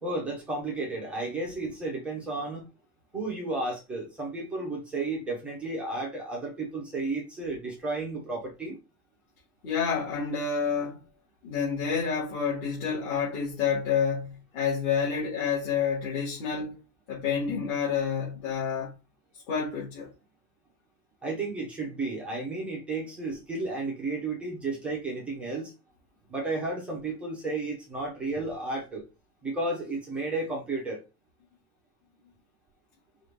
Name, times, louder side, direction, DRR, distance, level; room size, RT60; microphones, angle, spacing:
voice 1, 0.0-2.6 3.1-8.8 21.2-25.7 26.3-29.1 29.4-31.0, right 2 dB, 5° right, 0.4 m, -33 dB
voice 2, 9.6-11.0 11.4-16.8 17.1-18.9 19.5-20.1, left 6 dB, 45° left, 1.7 m, -29 dB
4.9 x 2.4 x 3.2 m
supercardioid pair, 160°, 44 cm